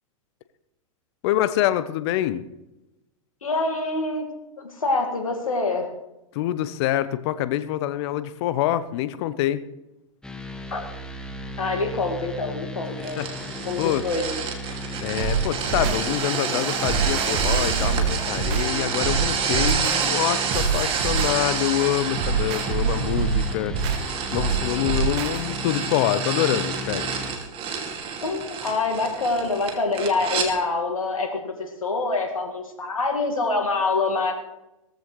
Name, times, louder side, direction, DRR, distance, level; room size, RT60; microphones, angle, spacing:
voice 1, 1.2-2.4 6.3-9.6 13.2-14.0 15.0-27.1, left 13 dB, 55° left, 14 dB, 0.9 m, -26 dB
voice 2, 3.4-4.3 4.6-5.9 10.7-10.8 11.6-13.2 13.6-14.3 28.2-34.3, left 3 dB, 85° left, 3 dB, 2.1 m, -25 dB
sound 1, 10.2-27.4, left 1 dB, 5° left, 1.5 m, -36 dB
sound 2, 13.0-30.5, right 6 dB, 30° right, 2.5 m, -29 dB
sound 3, 15.2-25.4, right 5 dB, 50° right, 2.3 m, -27 dB
18.5 x 14.0 x 3.3 m, 0.94 s
hypercardioid pair, 105°, 17 cm